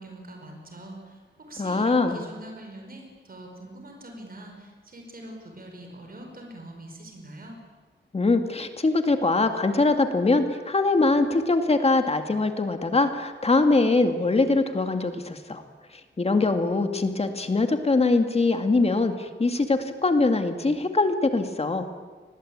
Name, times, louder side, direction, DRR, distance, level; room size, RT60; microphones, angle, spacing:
voice 1, 0.0-7.6, right 1 dB, 50° right, 3 dB, 5.3 m, -43 dB
voice 2, 1.6-2.2 8.1-15.6 16.2-21.9, left 3 dB, 30° left, 7 dB, 2.1 m, -22 dB
29.0 x 21.0 x 8.8 m, 1.4 s
wide cardioid pair, 175°, 19 cm